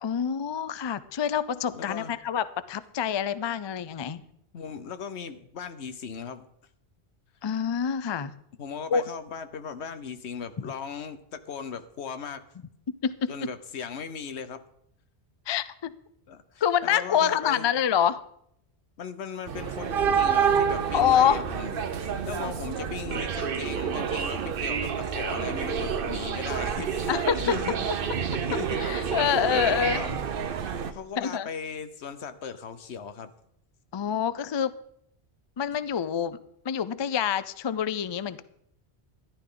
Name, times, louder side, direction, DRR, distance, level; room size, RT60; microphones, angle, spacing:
voice 1, 0.0-4.2 7.4-8.3 8.9-9.0 13.0-13.3 15.5-15.9 16.6-18.2 20.9-21.4 27.1-27.5 28.8-30.0 31.2-31.5 33.9-34.7 35.6-36.4 36.6-38.4, left 8 dB, 45° left, 16 dB, 0.3 m, -26 dB
voice 2, 1.7-2.2 4.5-6.5 8.6-12.4 13.3-14.6 16.3-17.7 19.0-21.8 22.3-27.9 28.5-28.8 29.5-30.2 30.9-33.3, left 6 dB, 80° left, 11 dB, 1.1 m, -38 dB
sound 1, 19.5-30.9, right 7 dB, 60° right, 0.9 m, -28 dB
14.0 x 11.5 x 3.8 m, 0.72 s
omnidirectional pair, 1.1 m